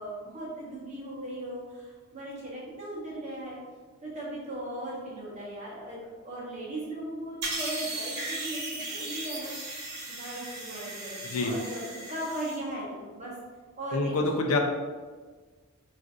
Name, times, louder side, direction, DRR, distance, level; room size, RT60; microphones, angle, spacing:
voice 1, 0.0-3.6 4.0-9.5 10.1-11.8 12.1-13.3 13.8-14.5, right 1 dB, 30° right, -5 dB, 0.7 m, -38 dB
sound 1, 7.4-12.6, right 2 dB, 50° right, 1.0 m, -37 dB
voice 2, 13.9-14.6, left 2 dB, 75° left, 3 dB, 0.4 m, -26 dB
3.8 x 2.5 x 2.4 m, 1.4 s
head